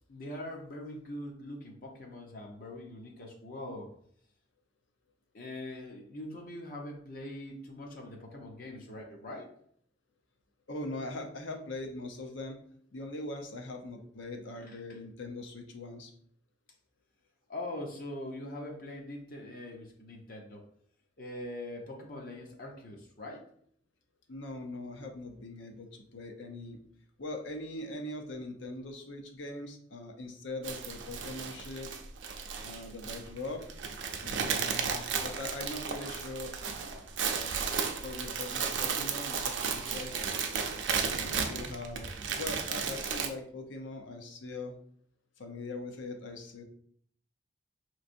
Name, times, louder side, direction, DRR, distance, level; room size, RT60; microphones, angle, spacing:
voice 1, 0.0-3.9 5.3-9.5 14.6-14.8 17.5-20.6 21.2-23.5, left 1 dB, 50° left, 0 dB, 0.6 m, -42 dB
voice 2, 10.7-12.6 12.9-16.1 24.3-26.8 27.2-31.9 32.6-33.6 34.2-37.5 38.0-40.3 41.0-42.1 42.4-44.7 45.4-46.6, left 2 dB, 90° left, 3 dB, 0.7 m, -41 dB
sound 1, 30.6-43.3, right 6 dB, 80° right, 0.5 m, -34 dB
5.2 x 3.1 x 2.5 m, 0.62 s
head